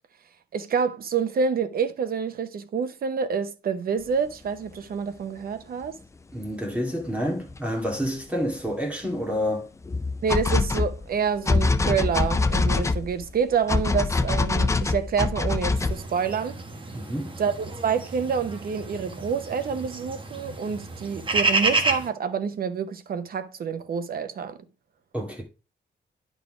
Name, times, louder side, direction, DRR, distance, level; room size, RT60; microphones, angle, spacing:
voice 1, 0.5-5.9 10.2-16.6 17.4-24.6, right 6 dB, 50° right, 0.8 m, -27 dB
sound 1, 5.8-5.9 7.5-7.6 8.0-8.1 9.8-16.0, left 3 dB, 15° left, 0.4 m, -24 dB
voice 2, 6.3-9.7 16.9-17.4 25.1-25.4, equal, 5° right, 2.3 m, -28 dB
sound 2, 15.7-22.1, right 3 dB, 25° right, 1.3 m, -30 dB
10.0 x 4.0 x 4.9 m
wide cardioid pair, 145°, 19 cm